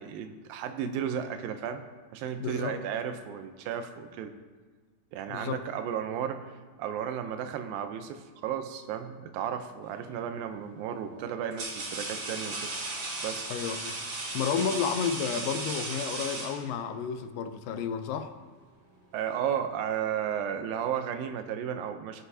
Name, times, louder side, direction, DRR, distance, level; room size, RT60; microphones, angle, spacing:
voice 1, 0.0-1.8 2.1-4.4 5.1-6.5 6.8-12.7 13.2-13.5 19.1-22.2, right 8 dB, 85° right, 8 dB, 2.5 m, -34 dB
voice 2, 2.4-2.7 5.3-5.6 13.5-14.0 14.3-18.3, left 7 dB, 80° left, 8 dB, 2.3 m, -31 dB
sound 1, 9.9-10.3 11.1-17.0, right 2 dB, 50° right, 2.8 m, -36 dB
17.5 x 7.8 x 2.8 m, 1.4 s
omnidirectional pair, 4.0 m